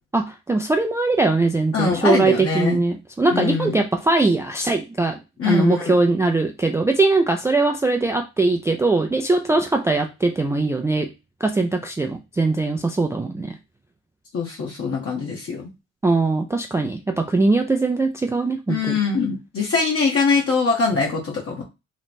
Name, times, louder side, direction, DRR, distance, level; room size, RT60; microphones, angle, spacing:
voice 1, 0.1-5.2 5.5-11.1 11.4-13.6 16.0-19.0, right 3 dB, 10° right, 4 dB, 0.3 m, -21 dB
voice 2, 1.7-2.8 3.3-3.8 5.4-5.9 14.3-15.7 18.7-21.6, left 4 dB, 50° left, -2 dB, 1.0 m, -22 dB
3.0 x 2.1 x 4.1 m, 0.26 s
cardioid pair, 90°, 30 cm